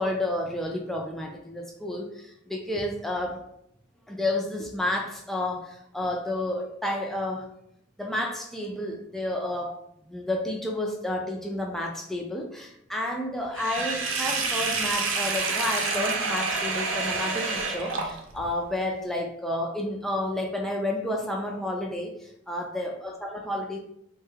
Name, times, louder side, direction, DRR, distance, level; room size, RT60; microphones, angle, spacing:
voice 1, 0.0-3.4 4.1-7.5 8.0-9.8 10.1-23.8, left 1 dB, ahead, 0 dB, 0.3 m, -31 dB
Sink (filling or washing), 13.5-18.5, right 4 dB, 75° right, 0.5 m, -28 dB
3.2 x 2.2 x 3.2 m, 0.76 s
head